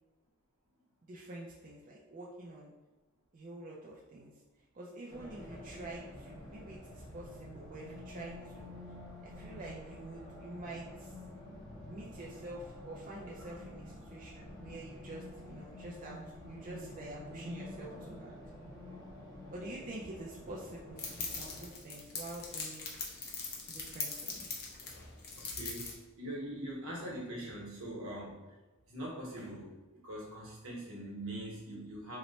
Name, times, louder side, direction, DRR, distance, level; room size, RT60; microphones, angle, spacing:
voice 1, 1.1-2.7 3.3-4.3 4.7-8.7 9.2-11.1 11.9-16.2 16.5-18.4 19.5-22.9 23.7-24.5, right 2 dB, 35° right, -4 dB, 0.4 m, -47 dB
Race car auto racing, 5.1-21.7, left 1 dB, 15° left, 1.0 m, -49 dB
sound 1, 21.0-25.9, left 4 dB, 45° left, 0.6 m, -41 dB
voice 2, 25.3-28.5 28.9-32.2, right 1 dB, 70° right, -3 dB, 1.0 m, -43 dB
3.0 x 2.1 x 3.9 m, 1.1 s
head